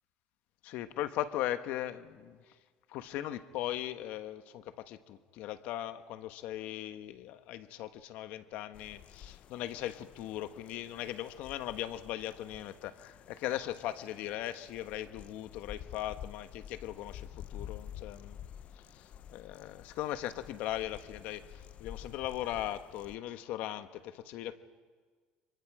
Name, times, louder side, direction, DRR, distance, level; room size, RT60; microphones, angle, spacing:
voice 1, 0.6-2.6 2.9-18.4 18.9-24.6, left 13 dB, 70° left, 1.2 m, -39 dB
sound 1, 8.7-23.1, left 10 dB, 50° left, 0.6 m, -50 dB
29.5 x 24.5 x 4.9 m
supercardioid pair, 100°, 3 cm